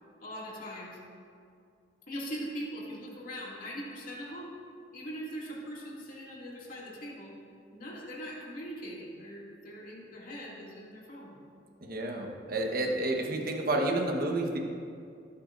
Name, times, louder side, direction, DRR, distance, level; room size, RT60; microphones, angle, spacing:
voice 1, 0.2-1.0 2.1-4.5 4.9-7.3 7.7-11.4 13.3-13.5, equal, 50° left, -5 dB, 2.4 m, -41 dB
voice 2, 11.8-14.6, right 2 dB, 55° right, 1 dB, 1.3 m, -30 dB
19.0 x 8.4 x 2.6 m, 2.4 s
head